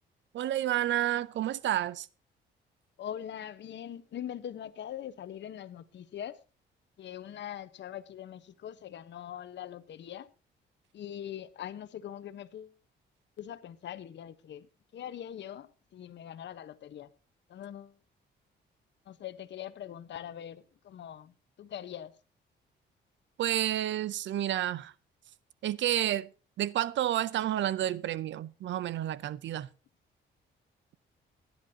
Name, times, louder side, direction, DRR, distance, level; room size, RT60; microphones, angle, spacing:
voice 1, 0.3-2.1 23.4-24.9 25.6-26.3 26.6-29.7, right 12 dB, 70° right, 0.6 m, -30 dB
voice 2, 3.0-6.4 7.0-10.3 10.9-12.8 13.4-17.1 17.5-18.0 19.1-22.1, left 10 dB, 65° left, 1.1 m, -42 dB
18.5 x 10.5 x 2.8 m
cardioid pair, 90°, 20 cm